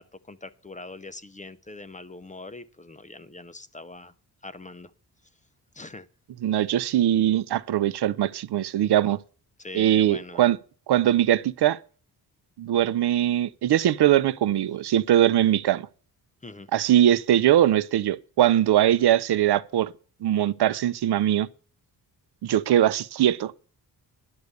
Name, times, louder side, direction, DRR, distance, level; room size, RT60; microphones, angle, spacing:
voice 1, 0.0-4.1 4.4-4.9 5.7-6.1 9.6-10.4 16.4-16.7 19.0-19.1, left 2 dB, 20° left, 0.6 m, -42 dB
voice 2, 6.4-9.2 9.7-10.6 10.9-11.8 12.6-15.9 16.7-19.9 20.2-21.5 22.4-23.5, right 11 dB, 70° right, 0.7 m, -21 dB
11.0 x 6.6 x 8.3 m
wide cardioid pair, 150°, 41 cm